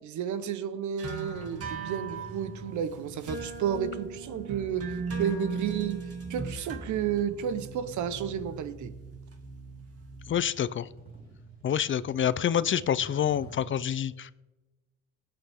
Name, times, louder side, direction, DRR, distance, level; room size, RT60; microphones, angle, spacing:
voice 1, 0.0-6.0 6.3-8.9, right 8 dB, 75° right, 13 dB, 1.0 m, -32 dB
sound 1, 1.0-10.3, right 4 dB, 50° right, 2.2 m, -39 dB
sound 2, 1.3-13.8, right 3 dB, 30° right, 3.9 m, -51 dB
voice 2, 10.3-10.9 11.6-14.3, left 9 dB, 40° left, 17 dB, 0.5 m, -27 dB
19.5 x 8.9 x 3.6 m, 1.1 s
cardioid pair, 90°, 30 cm